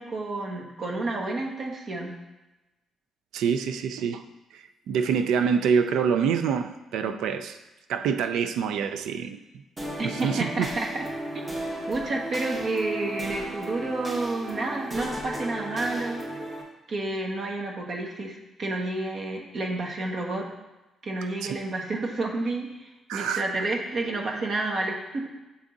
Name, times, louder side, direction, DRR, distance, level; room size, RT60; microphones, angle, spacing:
voice 1, 0.0-2.1 10.0-11.1 11.9-16.2 16.9-20.5 21.0-25.3, right 2 dB, 55° right, 0 dB, 1.2 m, -30 dB
voice 2, 3.3-4.2 4.5-7.6 7.9-9.4 10.0-10.7 21.4-21.6 23.1-23.4, right 6 dB, 85° right, 9 dB, 0.4 m, -26 dB
sound 1, 9.8-16.6, right 1 dB, 25° right, 1.5 m, -35 dB
7.3 x 3.5 x 3.9 m, 1.1 s
cardioid pair, 90°, 0 cm